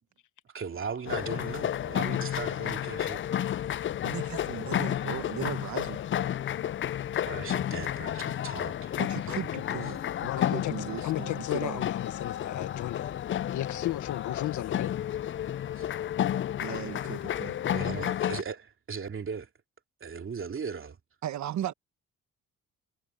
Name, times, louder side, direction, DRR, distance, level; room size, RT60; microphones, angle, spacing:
voice 1, 0.5-3.2 7.3-9.0 15.8-15.9 17.7-19.5 20.0-21.0, right 6 dB, 45° right, 2.9 m, -38 dB
sound 1, 1.1-18.4, left 11 dB, 40° left, 0.4 m, -31 dB
voice 2, 4.0-6.0 9.0-11.9 16.6-17.6 21.2-21.7, right 11 dB, 70° right, 1.5 m, -37 dB
voice 3, 10.2-10.8 11.0-13.1 13.5-14.9 16.7-16.8, left 14 dB, 80° left, 1.4 m, -34 dB
cardioid pair, 90°, 30 cm